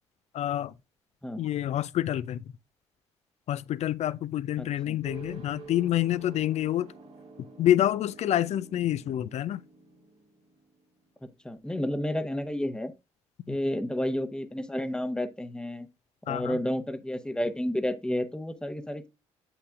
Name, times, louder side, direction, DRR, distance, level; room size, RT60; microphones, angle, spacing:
voice 1, 0.3-0.7 1.4-2.4 3.5-6.9 7.6-9.6 13.5-13.6 16.3-16.6, left 12 dB, 50° left, 0.5 m, -27 dB
voice 2, 4.6-5.0 11.4-12.9 13.5-15.9 16.3-19.1, left 1 dB, 5° left, 0.9 m, -31 dB
sound 1, 5.0-11.4, right 4 dB, 80° right, 2.3 m, -49 dB
8.1 x 5.9 x 2.4 m
hypercardioid pair, 45°, 14 cm